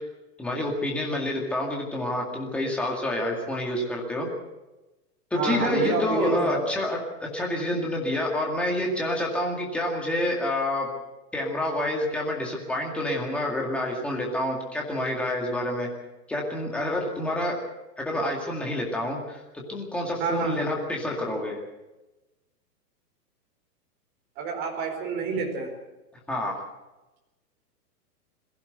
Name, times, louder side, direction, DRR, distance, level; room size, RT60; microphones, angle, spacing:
voice 1, 0.4-4.3 5.3-10.9 11.3-15.9 16.3-17.5 18.0-19.4 19.7-21.6 26.3-26.6, left 1 dB, ahead, -1 dB, 2.1 m, -28 dB
voice 2, 5.3-6.6 20.2-20.6 24.4-25.7, right 4 dB, 25° right, 1 dB, 4.5 m, -28 dB
21.5 x 15.5 x 8.0 m, 1.1 s
hypercardioid pair, 170°, 48 cm